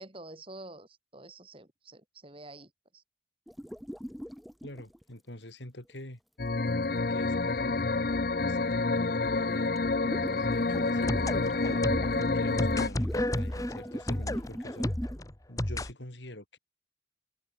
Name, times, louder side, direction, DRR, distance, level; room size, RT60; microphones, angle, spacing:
voice 1, 0.0-3.0 10.2-10.5, right 2 dB, 30° right, 2.6 m, -48 dB
sound 1, 3.5-5.0 6.6-6.8 9.0-9.1 9.4-15.2, equal, ahead, 1.6 m, -38 dB
voice 2, 4.6-6.2 7.1-8.1 8.4-9.8 10.4-11.8 12.3-14.9 15.5-16.6, left 1 dB, 85° left, 4.9 m, -45 dB
sound 2, 6.4-12.9, left 3 dB, 55° left, 0.7 m, -28 dB
sound 3, 10.7-15.9, left 1 dB, 20° left, 1.2 m, -33 dB
head